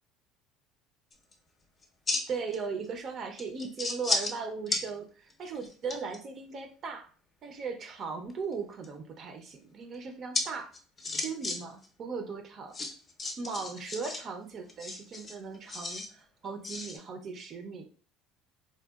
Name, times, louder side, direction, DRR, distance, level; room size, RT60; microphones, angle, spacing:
sound 1, 1.1-1.3 1.8-2.6 2.8-2.9 3.4-4.4 4.7-4.8 5.3-6.2 8.3-8.9 10.3-10.4 10.7-11.6 11.8-11.9 12.7-14.2 14.7-16.1 16.6-17.0, left 3 dB, 25° left, 0.5 m, -33 dB
voice 1, 2.3-7.1 7.4-10.7 11.2-12.7 13.4-17.9, right 5 dB, 45° right, 6 dB, 0.4 m, -38 dB
2.7 x 2.1 x 2.2 m, 0.41 s
supercardioid pair, 100°, 0 cm